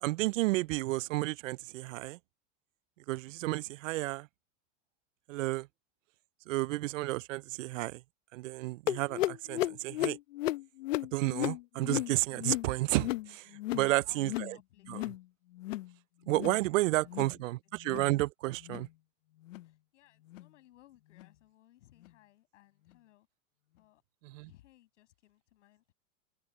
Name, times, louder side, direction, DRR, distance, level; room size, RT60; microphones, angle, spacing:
voice 1, 0.0-2.2 3.1-4.3 5.3-5.7 6.5-8.0 8.3-10.2 11.1-14.6 14.9-15.0 16.3-18.9 24.2-24.5, right 19 dB, 90° right, 0.5 m, -32 dB
sound 1, 8.9-13.9 14.2-14.6 14.8-15.2 15.5-15.9 16.3-16.6 17.0-17.4 17.8-18.1 18.6-18.9 19.4-19.7 20.3-20.5 21.2-21.3 22.0-22.1, left 16 dB, 85° left, 0.9 m, -35 dB
voice 2, 13.6-15.1 16.7-17.5 19.6-23.3 23.7-24.0 24.5-25.9, left 15 dB, 70° left, 6.5 m, -62 dB
open air
supercardioid pair, 170°, 37 cm